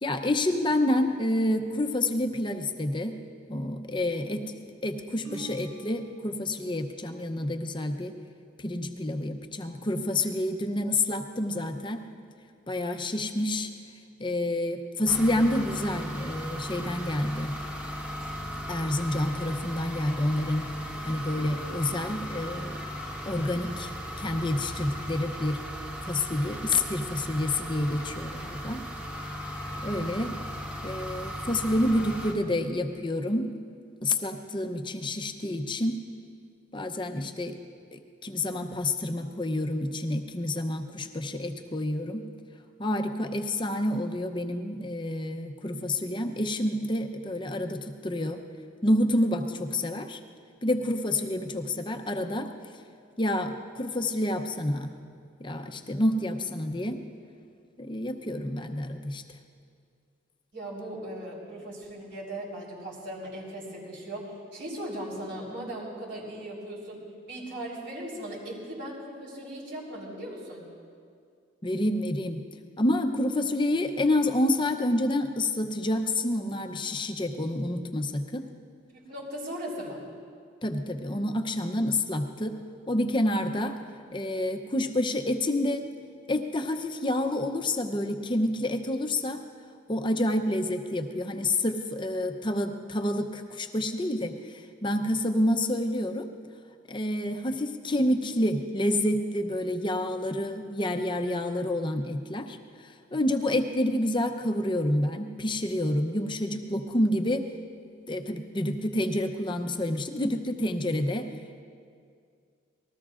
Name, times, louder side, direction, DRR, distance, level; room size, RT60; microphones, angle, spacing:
voice 1, 0.0-3.2 3.5-4.5 4.8-8.1 8.6-12.0 12.7-13.7 14.2-17.5 18.7-20.7 21.0-22.8 23.3-23.9 24.2-25.6 26.1-28.8 29.8-30.3 30.8-33.5 34.0-36.0 36.7-37.6 37.9-42.3 42.8-48.4 48.8-50.2 50.6-52.5 53.2-54.9 55.4-57.0 57.8-59.2 71.6-72.4 72.8-78.4 80.6-82.6 82.9-83.8 84.1-85.9 86.3-89.4 89.9-96.3 96.9-102.6 103.1-107.4 108.1-111.3, left 1 dB, 25° left, 5 dB, 0.7 m, -28 dB
sound 1, 5.2-6.9, right 3 dB, 90° right, 2.0 m, -45 dB
sound 2, 15.1-32.3, equal, 5° right, 1.3 m, -37 dB
voice 2, 60.5-67.0 67.3-70.7 79.1-80.0, right 1 dB, 55° right, -4 dB, 3.8 m, -38 dB
27.0 x 20.0 x 2.5 m, 2.3 s
head